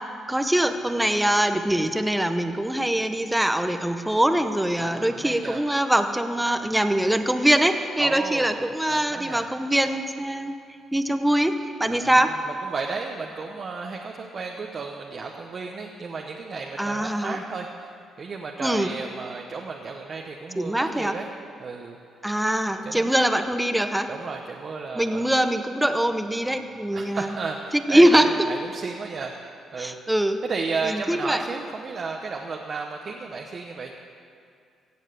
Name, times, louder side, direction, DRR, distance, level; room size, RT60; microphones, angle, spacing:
voice 1, 0.3-10.5 10.9-12.4 16.8-17.4 18.6-18.9 20.6-21.1 22.2-24.1 24.9-27.3 27.7-28.4 29.8-30.4 30.8-31.4, right 1 dB, 5° right, 8 dB, 0.9 m, -23 dB
voice 2, 2.5-2.9 4.8-5.6 8.0-8.6 8.9-9.5 11.9-21.3 21.6-22.0 22.8-23.1 24.1-25.3 26.9-29.3 29.7-30.0 30.4-33.9, right 4 dB, 45° right, 1 dB, 1.0 m, -33 dB
16.5 x 7.3 x 8.3 m, 2.4 s
cardioid pair, 90°, 0 cm